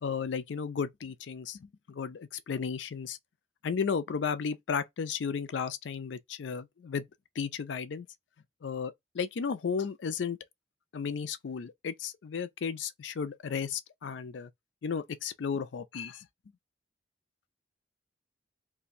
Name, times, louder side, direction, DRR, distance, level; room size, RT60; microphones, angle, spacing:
voice 1, 0.0-1.6 1.9-3.2 3.6-7.0 7.4-8.1 8.6-10.4 10.9-14.5 14.8-16.3, left 6 dB, 85° left, 0.4 m, -34 dB
2.6 x 2.3 x 3.9 m
head